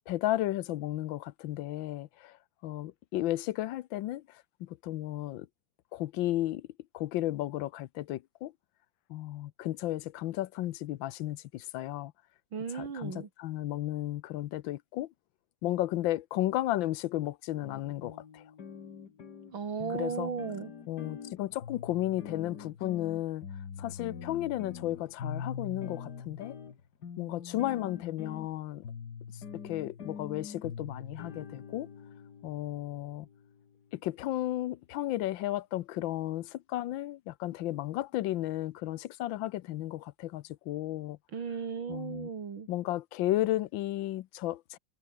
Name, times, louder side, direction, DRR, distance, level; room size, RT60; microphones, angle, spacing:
voice 1, 0.1-2.4 2.6-5.5 5.9-6.7 6.9-8.5 9.1-12.1 12.7-15.1 15.6-18.4 19.9-20.3 20.9-23.5 23.8-26.6 27.2-28.8 29.5-31.9 32.4-33.3 33.9-41.2 41.9-42.3 42.7-44.8, left 15 dB, 80° left, 1.4 m, -34 dB
voice 2, 12.5-13.3 19.5-20.7 41.3-42.7, right 6 dB, 85° right, 3.2 m, -36 dB
sound 1, 17.6-33.9, left 6 dB, 55° left, 2.3 m, -44 dB
omnidirectional pair, 2.1 m